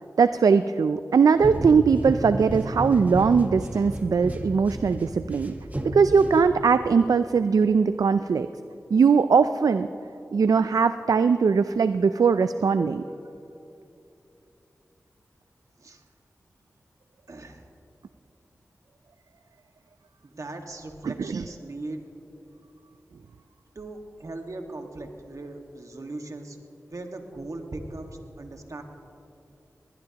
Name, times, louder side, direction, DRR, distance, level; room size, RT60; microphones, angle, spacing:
voice 1, 0.2-5.5 5.9-8.5 8.9-9.9 10.3-13.0 21.3-21.4, right 5 dB, 80° right, 11 dB, 0.4 m, -20 dB
sound 1, 1.4-6.9, right 1 dB, 25° right, 1.4 m, -32 dB
voice 2, 17.3-17.6 20.2-22.0 23.7-26.6 26.9-28.8, right 2 dB, 60° right, 4 dB, 1.7 m, -38 dB
21.0 x 19.5 x 2.9 m, 2.8 s
cardioid pair, 40°, 6 cm